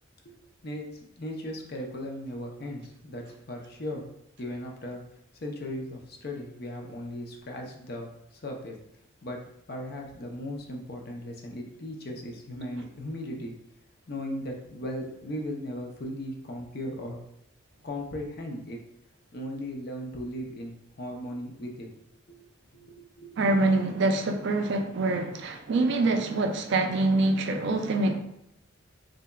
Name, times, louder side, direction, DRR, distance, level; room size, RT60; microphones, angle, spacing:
voice 1, 1.2-4.1 4.4-5.0 5.4-8.8 9.2-9.4 9.7-13.5 14.1-17.2 17.8-18.8 19.3-21.9 22.3-22.4 22.7-23.4, left 1 dB, 50° left, 1 dB, 0.5 m, -37 dB
voice 2, 23.4-28.2, right 2 dB, 55° right, 5 dB, 0.4 m, -25 dB
3.8 x 3.4 x 2.2 m, 0.78 s
head